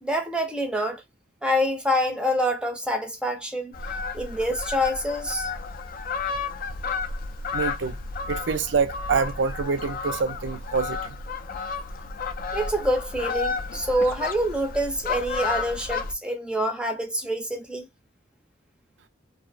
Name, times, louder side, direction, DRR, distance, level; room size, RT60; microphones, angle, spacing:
voice 1, 0.0-1.0 1.4-3.7 4.1-5.5 12.5-17.9, equal, 5° right, 0.6 m, -26 dB
Fowl, 3.7-16.1, left 4 dB, 50° left, 0.4 m, -32 dB
voice 2, 7.5-8.0 8.3-11.2, right 5 dB, 70° right, 0.5 m, -26 dB
2.7 x 2.0 x 2.4 m
head